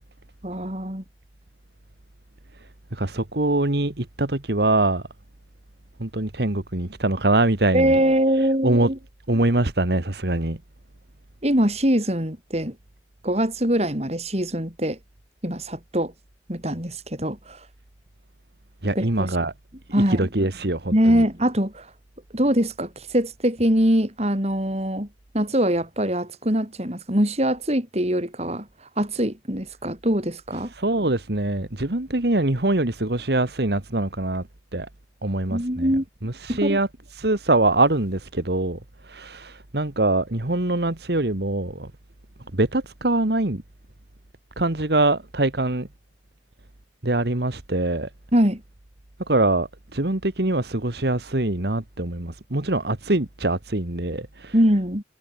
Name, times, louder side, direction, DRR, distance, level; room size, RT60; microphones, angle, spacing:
voice 1, 0.4-1.0 7.7-9.0 11.4-12.8 13.2-15.0 15.4-16.1 16.5-17.6 18.9-19.3 19.9-20.3 20.9-21.9 22.3-25.1 25.3-28.7 29.0-30.7 35.5-36.0 36.5-36.8 48.3-48.6 54.5-55.0, equal, 35° right, 6.0 m, -23 dB
voice 2, 2.9-5.0 6.0-8.0 8.6-8.9 9.3-10.6 18.8-19.5 20.1-21.2 30.7-34.4 34.7-34.9 35.2-35.9 36.2-36.9 37.1-41.9 42.5-43.6 44.6-45.9 47.0-48.1 49.3-54.5, right 2 dB, 60° right, 1.7 m, -23 dB
head